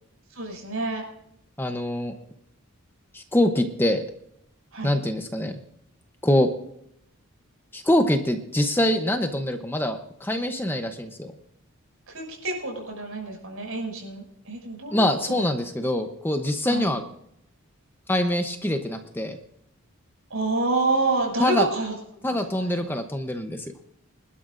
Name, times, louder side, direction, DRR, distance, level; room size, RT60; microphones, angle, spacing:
voice 1, 0.3-1.0 4.7-4.9 12.1-15.5 16.6-16.9 20.3-21.9 22.4-22.8, right 2 dB, 70° right, 1 dB, 6.3 m, -28 dB
voice 2, 1.6-2.1 3.1-4.0 4.8-5.6 6.2-6.5 7.7-11.3 14.9-17.0 18.1-19.4 21.4-21.6 22.2-23.6, left 1 dB, 10° left, 6 dB, 0.8 m, -24 dB
26.0 x 12.5 x 2.6 m, 0.73 s
head